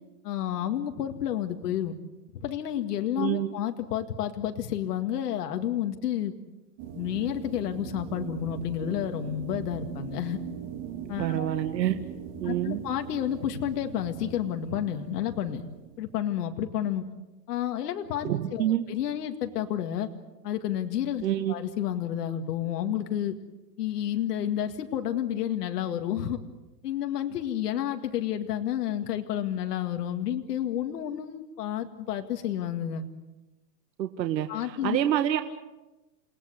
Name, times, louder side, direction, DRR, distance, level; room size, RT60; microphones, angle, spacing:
voice 1, 0.2-1.9 2.3-6.3 6.9-10.4 11.1-11.5 12.4-15.7 16.0-17.1 17.5-20.1 20.4-23.4 23.8-26.4 26.8-33.0 34.5-35.0, left 10 dB, 65° left, 6 dB, 2.1 m, -30 dB
voice 2, 3.2-3.5 11.2-12.0 12.4-12.8 18.2-18.9 21.2-21.5 34.0-35.4, right 11 dB, 80° right, 7 dB, 1.7 m, -27 dB
sound 1, 6.8-16.2, right 9 dB, 35° right, 3.6 m, -40 dB
29.5 x 18.0 x 8.1 m, 1.0 s
supercardioid pair, 165°, 50 cm